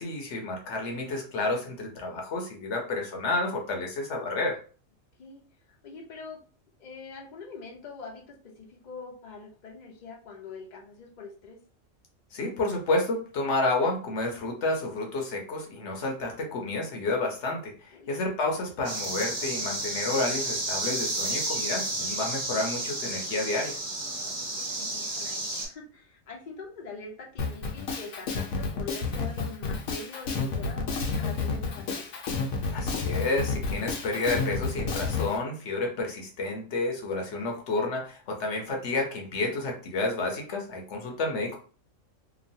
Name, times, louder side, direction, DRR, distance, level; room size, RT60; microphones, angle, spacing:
voice 1, 0.0-4.6 12.3-23.7 32.7-41.6, left 2 dB, 65° left, 1 dB, 1.0 m, -30 dB
voice 2, 5.7-6.4 6.8-11.6 17.9-18.1 24.2-32.1, left 4 dB, 45° left, 0 dB, 0.6 m, -44 dB
sound 1, 18.8-25.7, right 2 dB, 40° right, 1.3 m, -32 dB
Drum kit, 27.4-35.3, left 4 dB, 90° left, 1.1 m, -30 dB
3.0 x 2.4 x 2.6 m, 0.40 s
omnidirectional pair, 1.4 m